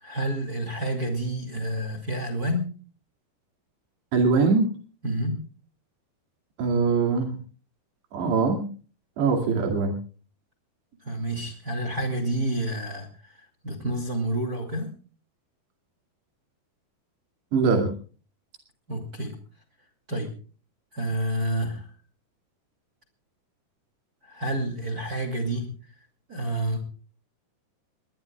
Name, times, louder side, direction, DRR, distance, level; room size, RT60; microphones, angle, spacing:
voice 1, 0.0-2.7 5.0-5.4 11.0-13.4 13.6-14.9 18.9-19.4 20.1-20.3 20.9-21.9 24.2-25.7 26.3-26.8, right 1 dB, 25° right, 5 dB, 2.4 m, -29 dB
voice 2, 4.1-4.7 6.6-7.4 8.1-8.7 9.2-9.9 17.5-17.9, right 4 dB, 90° right, 2 dB, 4.6 m, -22 dB
23.0 x 19.5 x 2.3 m, 0.39 s
omnidirectional pair, 4.7 m